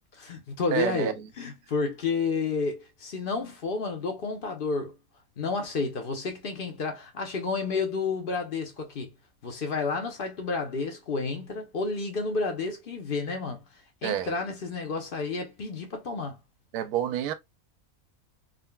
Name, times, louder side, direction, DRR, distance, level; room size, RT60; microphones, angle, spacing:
voice 1, 0.1-4.9 5.4-9.1 9.4-13.6 14.0-16.4, left 4 dB, 50° left, 0.7 m, -31 dB
voice 2, 0.7-1.1 14.0-14.3 16.7-17.3, right 10 dB, 90° right, 1.1 m, -28 dB
3.7 x 2.2 x 2.2 m
omnidirectional pair, 1.5 m